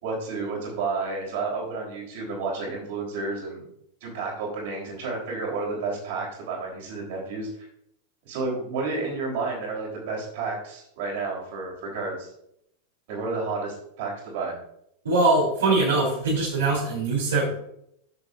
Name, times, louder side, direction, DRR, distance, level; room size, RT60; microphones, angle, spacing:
voice 1, 0.0-3.7 4.0-7.5 8.2-12.3 13.1-14.6, right 3 dB, 50° right, -2 dB, 3.8 m, -31 dB
voice 2, 15.0-17.6, right 3 dB, 70° right, -5 dB, 3.3 m, -22 dB
13.5 x 7.1 x 2.6 m, 0.75 s
figure-of-eight pair, 90°, 0 cm